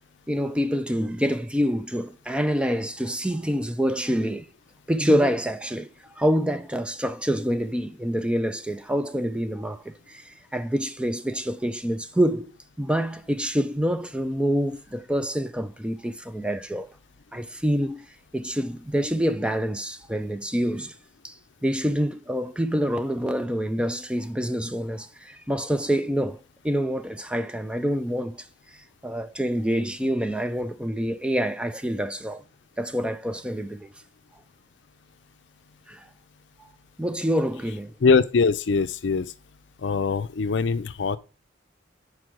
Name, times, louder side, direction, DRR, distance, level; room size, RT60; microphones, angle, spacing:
voice 1, 0.3-4.5 4.9-5.9 6.2-12.5 12.8-16.9 17.3-18.1 18.3-21.0 21.2-21.4 21.6-28.5 29.0-32.4 32.8-33.9 35.9-36.1 37.0-37.9, equal, 5° right, 0.4 m, -26 dB
voice 2, 38.0-39.3 39.8-41.2, left 4 dB, 70° left, 0.5 m, -22 dB
6.1 x 4.8 x 4.9 m
head